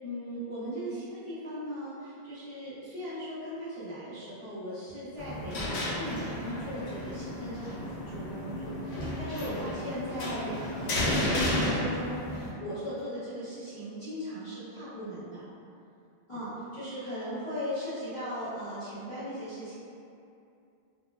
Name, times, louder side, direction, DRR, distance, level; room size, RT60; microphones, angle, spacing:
voice 1, 0.0-15.4 16.3-19.7, equal, 40° left, -14 dB, 0.6 m, -38 dB
sound 1, 5.2-12.5, left 1 dB, 85° left, 0.9 m, -32 dB
2.2 x 2.0 x 3.2 m, 2.6 s
omnidirectional pair, 1.0 m